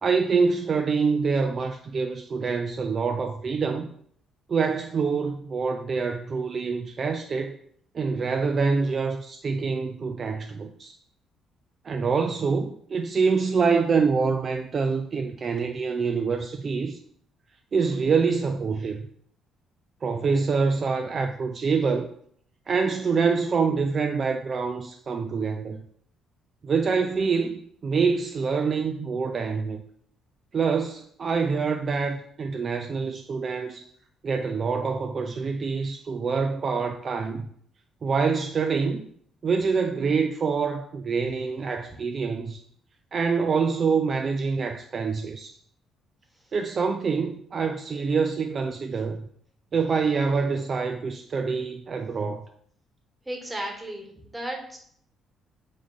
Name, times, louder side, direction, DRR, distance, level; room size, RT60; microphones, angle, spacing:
voice 1, 0.0-3.9 4.5-7.6 7.9-10.9 11.8-17.0 17.7-19.0 20.0-22.1 22.7-25.8 26.6-29.8 30.5-33.9 34.2-37.5 38.0-39.0 39.4-42.6 43.1-45.5 46.5-49.3 49.7-52.5, right 5 dB, 40° right, 0.3 m, -26 dB
voice 2, 53.3-54.8, right 1 dB, 10° right, 1.4 m, -34 dB
3.7 x 3.5 x 3.8 m
figure-of-eight pair, 45°, 0 cm